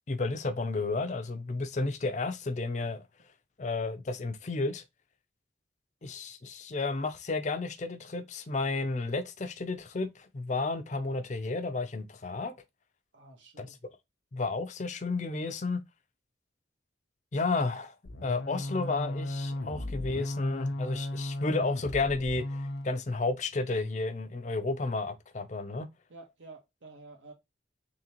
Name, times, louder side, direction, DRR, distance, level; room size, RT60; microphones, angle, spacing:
voice 1, 0.1-3.0 3.6-4.8 6.0-12.5 13.6-13.7 14.3-15.8 17.3-17.9 18.2-25.9, left 3 dB, 40° left, 0.5 m, -32 dB
voice 2, 13.1-13.8 18.5-18.7 26.1-27.3, right 3 dB, 85° right, 1.1 m, -51 dB
sound 1, 18.0-22.9, left 1 dB, 85° left, 0.6 m, -36 dB
3.8 x 3.4 x 2.8 m
head